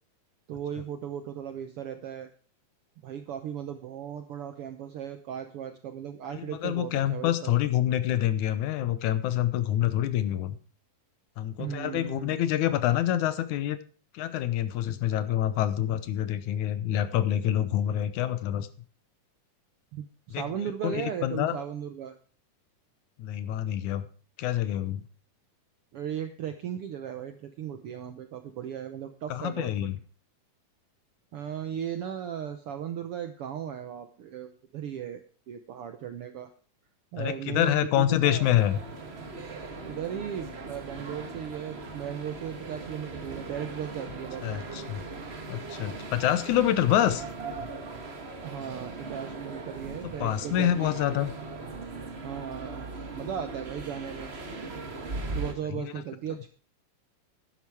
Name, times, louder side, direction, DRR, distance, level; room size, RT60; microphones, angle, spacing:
voice 1, 0.5-2.3 3.0-7.5 11.6-12.4 19.9-22.2 25.9-29.7 31.3-36.5 37.1-38.5 39.8-44.7 48.4-50.9 52.2-52.9 53.1-54.3 55.3-56.5, right 9 dB, 75° right, 8 dB, 1.3 m, -37 dB
voice 2, 6.4-10.6 11.4-13.8 14.1-18.7 20.3-20.4 20.8-21.6 23.2-24.0 24.4-25.0 29.3-29.9 37.2-38.8 44.4-45.0 45.5-47.2 50.0-51.3 55.7-55.9, left 11 dB, 80° left, 13 dB, 2.2 m, -27 dB
sound 1, 38.4-55.5, right 3 dB, 45° right, 0.7 m, -39 dB
12.0 x 10.0 x 4.8 m, 0.40 s
omnidirectional pair, 3.6 m